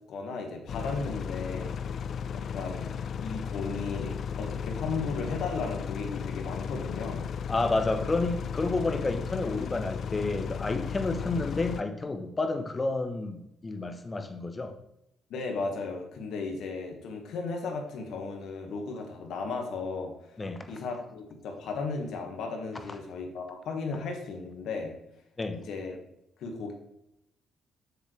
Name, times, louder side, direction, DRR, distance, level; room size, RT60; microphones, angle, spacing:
voice 1, 0.1-2.0 2.3-7.3 8.9-9.1 15.3-20.1 20.7-24.9 25.6-26.0 26.4-26.7, left 4 dB, 80° left, 3 dB, 1.6 m, -35 dB
sound 1, 0.7-11.8, left 7 dB, 60° left, 0.4 m, -35 dB
voice 2, 7.5-14.7 20.4-20.7 25.4-25.6, left 3 dB, 25° left, 7 dB, 1.0 m, -30 dB
7.2 x 6.9 x 3.3 m, 0.82 s
cardioid pair, 90°, 0 cm